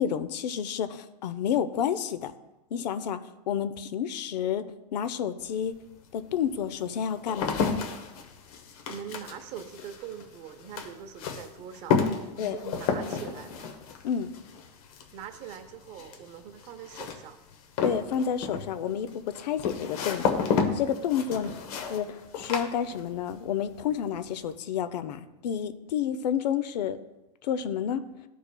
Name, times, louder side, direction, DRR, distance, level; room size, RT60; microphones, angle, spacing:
voice 1, 0.0-2.3 2.7-3.2 3.5-4.6 4.9-5.7 6.1-7.8 12.4-12.6 14.0-14.3 17.8-21.5 21.9-27.0 27.4-28.0, left 8 dB, 80° left, 12 dB, 0.6 m, -30 dB
sound 1, 5.4-5.5 6.2-23.4 23.7-24.2, left 5 dB, 60° left, 1.1 m, -32 dB
voice 2, 8.9-13.7 15.1-17.4 21.3-21.6, right 8 dB, 35° right, 9 dB, 0.7 m, -43 dB
13.5 x 5.0 x 2.2 m, 1.0 s
supercardioid pair, 155°, 21 cm